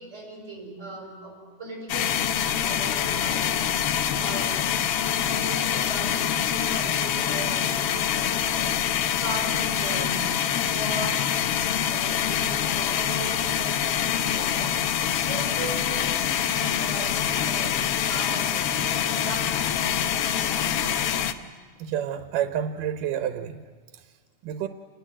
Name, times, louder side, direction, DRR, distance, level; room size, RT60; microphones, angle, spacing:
voice 1, 0.0-3.9 4.1-4.7 5.2-8.8 9.0-11.4 11.8-14.8 15.2-21.0, right 2 dB, 20° right, 1 dB, 5.6 m, -38 dB
sound 1, 1.9-21.3, left 9 dB, 80° left, 1.3 m, -25 dB
voice 2, 21.8-23.6 24.4-24.7, right 9 dB, 85° right, 8 dB, 2.4 m, -29 dB
28.5 x 20.0 x 7.5 m, 1.5 s
omnidirectional pair, 3.7 m